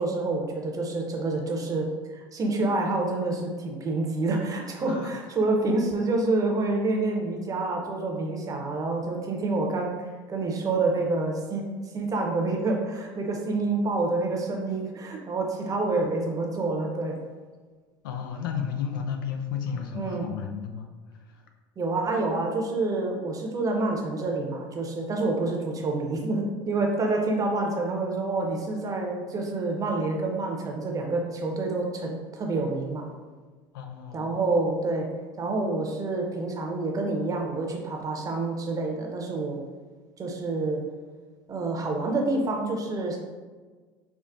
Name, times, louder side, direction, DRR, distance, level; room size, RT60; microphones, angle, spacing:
voice 1, 0.0-11.6 11.9-17.2 19.9-20.3 21.8-33.0 34.1-35.1 35.4-39.6 40.2-40.8 41.5-43.2, right 2 dB, 30° right, 1 dB, 0.7 m, -28 dB
voice 2, 18.0-21.4 33.7-34.3, left 7 dB, 80° left, 4 dB, 0.4 m, -33 dB
4.6 x 2.0 x 2.5 m, 1.4 s
hypercardioid pair, 85°, 11 cm